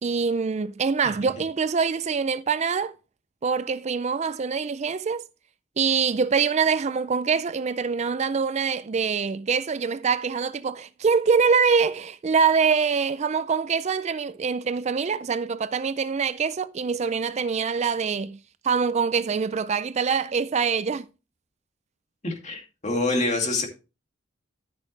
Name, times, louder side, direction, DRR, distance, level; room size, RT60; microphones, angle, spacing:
voice 1, 0.0-2.9 3.4-5.2 5.8-18.4 18.6-21.1, right 5 dB, 35° right, 0.4 m, -24 dB
voice 2, 22.2-23.7, left 2 dB, 35° left, 2.4 m, -26 dB
13.5 x 6.4 x 3.2 m
head